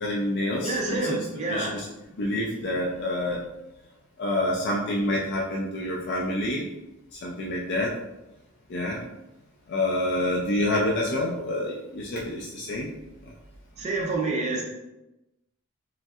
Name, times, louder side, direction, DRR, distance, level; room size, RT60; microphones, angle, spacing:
voice 1, 0.0-1.2 1.5-1.9 2.1-3.4 4.2-6.6 7.1-7.9 8.7-9.0 9.7-12.9, left 1 dB, 50° left, -3 dB, 0.4 m, -27 dB
voice 2, 0.6-1.8 13.8-14.6, right 2 dB, 30° right, -2 dB, 0.4 m, -27 dB
3.1 x 2.7 x 2.3 m, 0.96 s
head